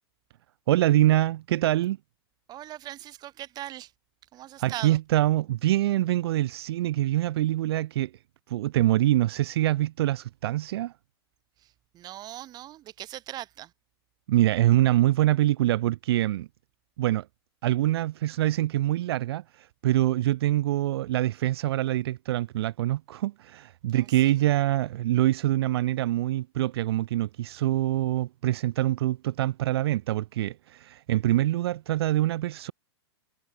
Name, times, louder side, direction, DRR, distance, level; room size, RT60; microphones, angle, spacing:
voice 1, 0.7-2.0 4.6-8.1 8.5-10.9 14.3-16.5 17.0-17.3 17.6-32.7, right 14 dB, 65° right, 0.5 m, -25 dB
voice 2, 2.5-3.9 4.3-5.0 11.9-13.7 23.9-24.0, right 14 dB, 30° right, 1.5 m, -40 dB
hypercardioid pair, 125°, 14 cm